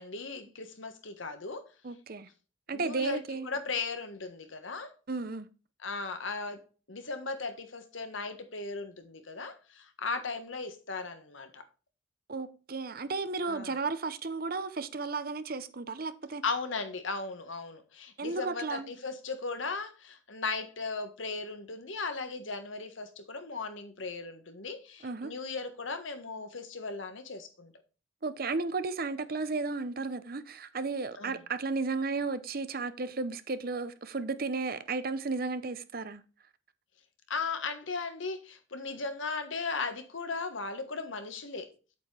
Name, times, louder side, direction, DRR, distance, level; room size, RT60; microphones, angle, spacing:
voice 1, 0.0-1.6 2.7-4.9 5.8-6.6 6.9-11.6 13.4-13.8 16.4-27.7 31.1-31.4 37.3-41.7, left 4 dB, 75° left, 1.5 m, -37 dB
voice 2, 1.8-2.3 2.7-3.5 5.1-5.5 12.3-16.4 18.2-18.9 25.0-25.3 28.2-36.2, right 4 dB, 50° right, 0.8 m, -34 dB
8.3 x 8.2 x 3.4 m
head